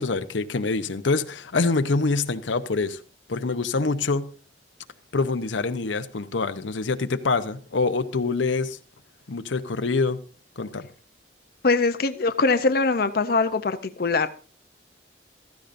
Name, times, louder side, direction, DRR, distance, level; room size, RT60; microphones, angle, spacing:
voice 1, 0.0-3.0 3.3-4.3 5.1-8.8 9.3-10.2 10.6-10.8, left 3 dB, 85° left, 0.8 m, -25 dB
voice 2, 11.6-14.3, left 3 dB, 55° left, 0.6 m, -22 dB
15.5 x 13.5 x 2.6 m
head